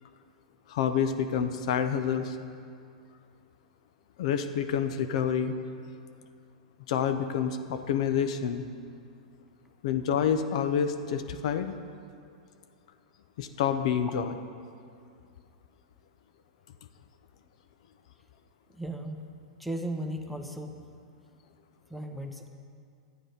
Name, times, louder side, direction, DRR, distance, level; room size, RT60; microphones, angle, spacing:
voice 1, 0.7-2.4 4.2-5.5 6.9-8.6 9.8-11.8 13.4-14.3, left 8 dB, 60° left, 9 dB, 0.6 m, -28 dB
voice 2, 18.7-19.3 19.6-20.7 21.9-22.5, right 1 dB, ahead, 4 dB, 1.0 m, -36 dB
12.0 x 9.2 x 5.1 m, 2.3 s
hypercardioid pair, 100°, 4 cm